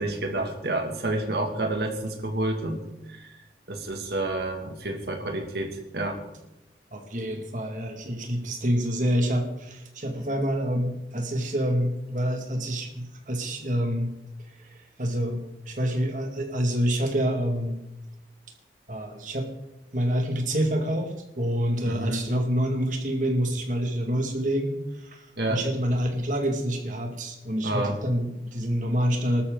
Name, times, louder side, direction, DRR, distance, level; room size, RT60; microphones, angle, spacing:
voice 1, 0.0-2.8 3.1-3.3 3.7-6.2 21.8-22.3 25.4-25.6 27.6-28.0, right 2 dB, 70° right, 2 dB, 2.4 m, -29 dB
voice 2, 6.9-14.1 14.7-17.8 18.9-19.5 19.9-29.4, equal, 45° right, 3 dB, 2.2 m, -27 dB
22.0 x 12.5 x 4.0 m, 0.95 s
head